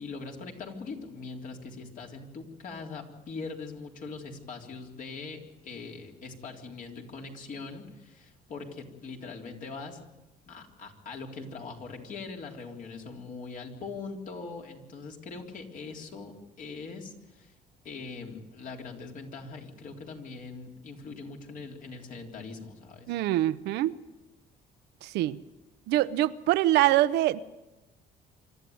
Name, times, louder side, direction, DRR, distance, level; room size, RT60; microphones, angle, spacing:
voice 1, 0.0-10.0 10.5-17.5 17.8-23.1, left 4 dB, 50° left, 1 dB, 3.7 m, -41 dB
voice 2, 23.1-23.9 25.0-25.4 25.9-27.4, right 15 dB, 85° right, 14 dB, 0.8 m, -24 dB
26.0 x 13.0 x 9.5 m, 1.0 s
cardioid pair, 110°, 17 cm